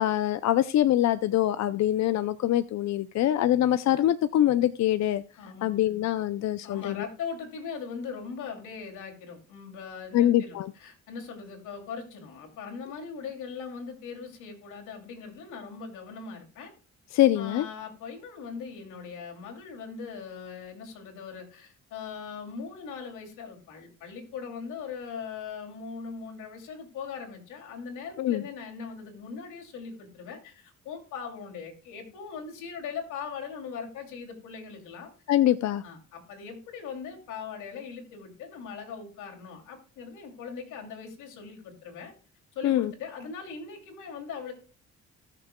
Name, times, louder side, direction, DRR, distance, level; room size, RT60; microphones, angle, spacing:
voice 1, 0.0-5.2 5.6-7.1 10.1-10.7 17.1-17.7 28.2-28.4 35.3-35.8 42.6-42.9, left 12 dB, 65° left, 13 dB, 0.5 m, -24 dB
voice 2, 5.4-6.0 6.6-16.7 17.4-35.1 35.8-42.1 42.5-44.5, left 6 dB, 90° left, 2 dB, 2.7 m, -40 dB
19.5 x 6.7 x 2.2 m, 0.38 s
cardioid pair, 90°, 30 cm